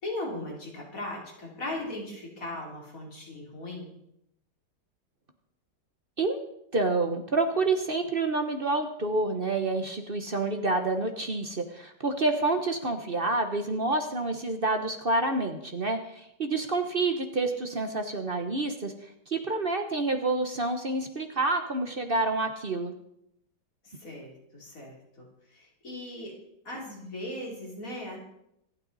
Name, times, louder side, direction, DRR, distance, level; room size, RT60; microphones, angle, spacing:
voice 1, 0.0-3.9 23.8-25.3 25.5-26.3 26.7-28.2, left 1 dB, 50° left, -2 dB, 3.8 m, -38 dB
voice 2, 6.7-18.9 19.3-22.9, right 2 dB, 35° right, 6 dB, 1.1 m, -28 dB
25.5 x 9.0 x 4.1 m, 0.77 s
omnidirectional pair, 1.9 m